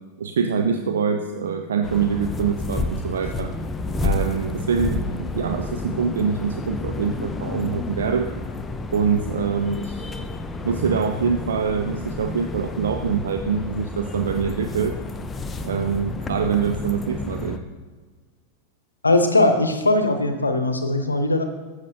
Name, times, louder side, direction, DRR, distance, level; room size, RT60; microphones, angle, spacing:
voice 1, 0.2-3.5 4.0-8.3 8.9-10.0 10.6-15.0 15.6-17.6, right 6 dB, 65° right, 7 dB, 0.5 m, -24 dB
sound 1, 1.8-17.6, left 2 dB, 15° left, 0.7 m, -30 dB
voice 2, 19.0-21.4, left 2 dB, 80° left, 8 dB, 0.8 m, -19 dB
13.5 x 7.9 x 2.7 m, 1.5 s
figure-of-eight pair, 90°, 0 cm